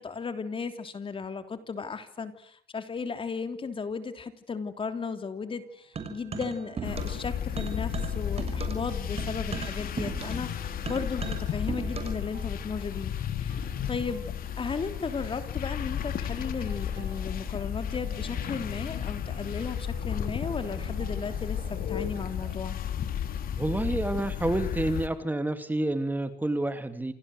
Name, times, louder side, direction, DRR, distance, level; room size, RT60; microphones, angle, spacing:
voice 1, 0.0-13.1 13.4-22.8, left 5 dB, 30° left, 9 dB, 3.3 m, -35 dB
sound 1, 5.4-5.9 6.6-22.5, right 11 dB, 80° right, 4.0 m, -50 dB
sound 2, 6.0-7.3 7.6-12.3, right 6 dB, 35° right, 6.5 m, -37 dB
sound 3, 6.8-25.1, left 9 dB, 60° left, 3.7 m, -33 dB
voice 2, 23.5-27.1, right 2 dB, 10° right, 9 dB, 2.9 m, -29 dB
28.5 x 26.0 x 8.1 m, 0.65 s
cardioid pair, 110°, 17 cm